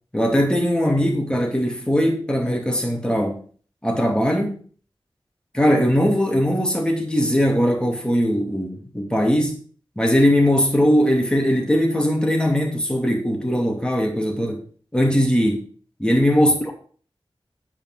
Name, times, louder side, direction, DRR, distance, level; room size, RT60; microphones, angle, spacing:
voice 1, 0.1-3.4 3.8-4.6 5.5-9.6 10.0-14.6 14.9-15.6 16.0-16.7, equal, 10° left, 1 dB, 2.6 m, -20 dB
8.6 x 5.4 x 5.6 m, 0.43 s
wide cardioid pair, 65°, 9 cm